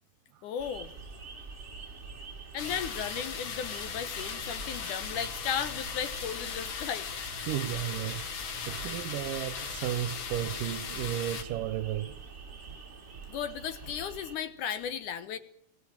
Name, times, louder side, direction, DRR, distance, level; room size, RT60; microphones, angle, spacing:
voice 1, 0.4-0.9 2.5-7.1 13.3-15.4, left 8 dB, 70° left, 2.3 m, -35 dB
sound 1, 0.6-14.4, right 4 dB, 25° right, 1.6 m, -46 dB
sound 2, 2.6-11.4, left 7 dB, 50° left, 2.3 m, -38 dB
voice 2, 7.5-12.2, right 12 dB, 75° right, 2.4 m, -34 dB
22.5 x 15.5 x 8.8 m
omnidirectional pair, 4.2 m